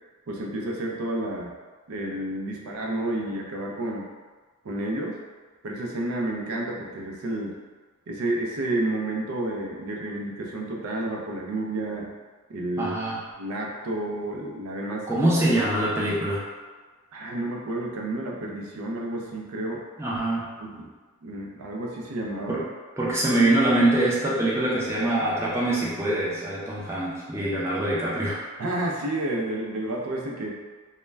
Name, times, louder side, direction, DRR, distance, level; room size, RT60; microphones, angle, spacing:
voice 1, 0.3-1.5 1.9-4.1 4.6-5.2 5.6-7.6 8.1-12.1 12.5-13.0 13.4-15.1 15.7-16.1 17.1-19.8 20.6-20.9 21.2-22.6 28.6-30.5, right 1 dB, 70° right, -1 dB, 0.4 m, -30 dB
voice 2, 12.8-13.2 15.1-16.4 20.0-20.5 22.5-22.6 23.0-28.4, right 1 dB, 10° right, -7 dB, 0.4 m, -24 dB
2.1 x 2.1 x 3.3 m, 1.4 s
head